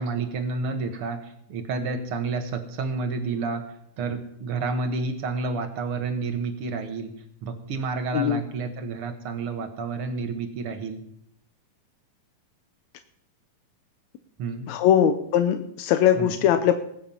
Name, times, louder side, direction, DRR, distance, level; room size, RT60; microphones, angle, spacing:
voice 1, 0.0-7.1 7.4-11.0 14.4-14.7 16.2-16.3, right 4 dB, 55° right, 7 dB, 1.7 m, -30 dB
voice 2, 14.7-16.7, left 10 dB, 75° left, 8 dB, 1.8 m, -21 dB
19.5 x 9.1 x 5.5 m, 0.72 s
omnidirectional pair, 3.9 m